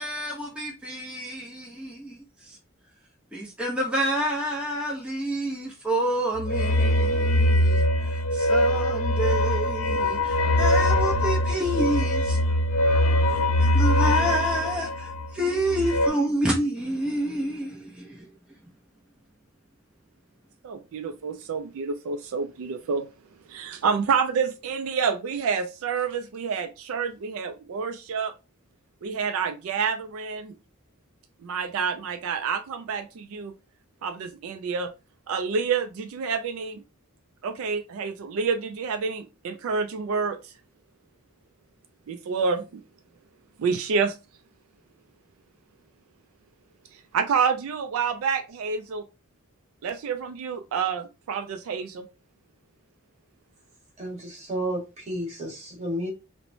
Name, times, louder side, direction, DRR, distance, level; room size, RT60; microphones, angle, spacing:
voice 1, 0.0-2.2 2.4-2.6 3.3-12.4 13.3-13.4 13.7-18.3, right 1 dB, 5° right, 0.5 m, -29 dB
sound 1, 6.4-16.1, left 1 dB, 80° left, 0.4 m, -22 dB
voice 2, 20.6-23.1 23.5-28.3 29.0-30.5 31.4-33.5 34.0-34.9 35.3-36.8 37.4-40.5 42.1-42.8 43.6-44.2 47.1-49.0 49.8-52.1, right 5 dB, 80° right, 0.3 m, -28 dB
voice 3, 54.0-56.1, right 1 dB, 30° right, 1.0 m, -32 dB
3.0 x 2.1 x 2.5 m
head